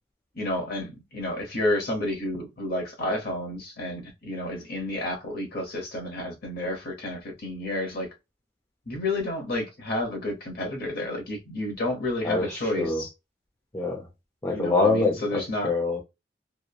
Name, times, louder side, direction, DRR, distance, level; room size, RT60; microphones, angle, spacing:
voice 1, 0.3-8.1 8.9-13.1 14.5-15.7, left 1 dB, 55° left, 0.9 m, -30 dB
voice 2, 12.2-13.0 13.7-14.0 14.4-16.0, left 3 dB, 20° left, 0.5 m, -25 dB
3.0 x 2.1 x 2.3 m
head